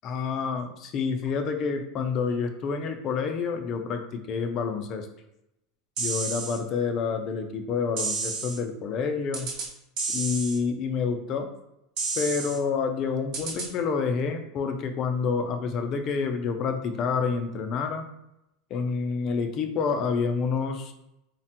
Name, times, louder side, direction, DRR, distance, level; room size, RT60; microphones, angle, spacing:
voice 1, 0.0-5.1 6.0-9.5 10.1-11.5 12.2-18.1 18.7-20.9, left 5 dB, 35° left, 6 dB, 0.3 m, -28 dB
sound 1, 6.0-6.6 8.0-8.6 9.3-9.7 10.0-10.6 12.0-12.6 13.3-13.7, right 4 dB, 45° right, 0.6 m, -31 dB
3.2 x 2.1 x 2.8 m, 0.85 s
supercardioid pair, 160°, 0 cm